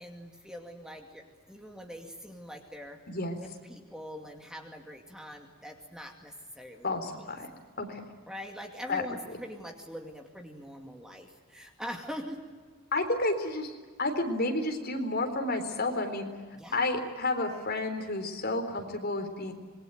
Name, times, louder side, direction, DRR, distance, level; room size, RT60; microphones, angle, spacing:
voice 1, 0.0-3.0 3.4-6.9 7.2-7.3 8.3-12.4 16.6-16.8, equal, 5° right, 3 dB, 2.3 m, -43 dB
voice 2, 3.1-3.4 6.8-7.5 7.8-8.0 8.9-9.0 12.9-16.3 16.7-19.5, left 2 dB, 45° left, 5 dB, 3.8 m, -31 dB
26.5 x 21.5 x 9.1 m, 1.5 s
head